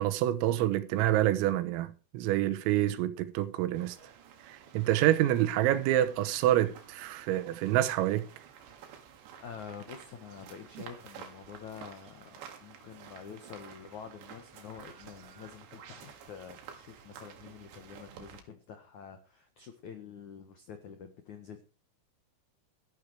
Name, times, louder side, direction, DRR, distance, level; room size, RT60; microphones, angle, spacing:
voice 1, 0.0-4.0 4.5-8.3, right 13 dB, 90° right, 3.8 m, -27 dB
sound 1, 3.7-18.4, right 8 dB, 65° right, 4.0 m, -51 dB
voice 2, 9.4-21.6, left 7 dB, 80° left, 1.7 m, -47 dB
13.5 x 12.0 x 4.8 m
omnidirectional pair, 5.9 m